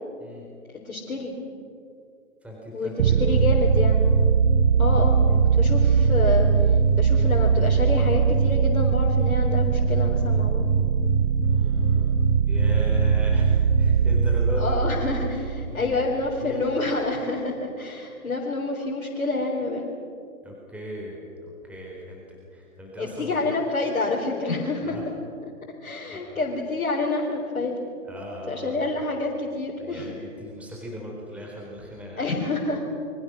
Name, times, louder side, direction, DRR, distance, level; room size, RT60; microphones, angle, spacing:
voice 1, 0.7-1.3 2.7-2.9 3.2-4.1 4.8-6.5 7.0-10.7 14.6-19.9 23.0-24.9 25.8-27.7 28.5-30.1 32.2-32.8, left 3 dB, 70° left, -3 dB, 4.2 m, -28 dB
voice 2, 2.4-3.4 5.0-5.2 11.4-12.2 12.5-14.8 15.7-16.8 20.4-23.5 24.8-25.0 26.1-26.4 28.0-28.8 29.8-32.3, equal, 5° right, -2 dB, 4.0 m, -38 dB
sound 1, 3.0-16.4, right 6 dB, 35° right, 1.2 m, -20 dB
29.5 x 23.5 x 6.3 m, 2.5 s
figure-of-eight pair, 130°, 42 cm